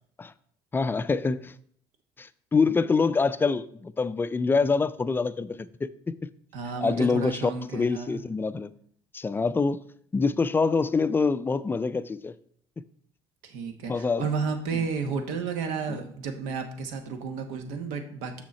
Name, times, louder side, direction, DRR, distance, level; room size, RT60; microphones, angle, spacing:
voice 1, 0.7-1.5 2.2-6.1 6.8-8.7 9.1-9.8 10.1-12.3 13.9-14.3, left 4 dB, 20° left, 0.3 m, -25 dB
voice 2, 6.5-8.2 13.4-18.4, right 5 dB, 80° right, 1.1 m, -32 dB
6.4 x 6.1 x 4.2 m
supercardioid pair, 85°, 12 cm